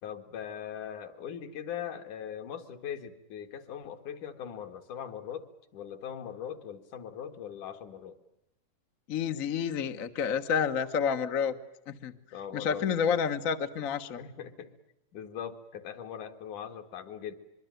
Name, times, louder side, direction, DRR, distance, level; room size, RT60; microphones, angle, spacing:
voice 1, 0.0-8.2 12.3-13.2 14.2-14.7 15.1-17.4, left 8 dB, 70° left, 7 dB, 3.2 m, -40 dB
voice 2, 9.1-11.5 11.9-12.1 12.5-14.2, left 7 dB, 55° left, 8 dB, 0.9 m, -29 dB
24.5 x 23.5 x 9.2 m, 0.84 s
omnidirectional pair, 3.7 m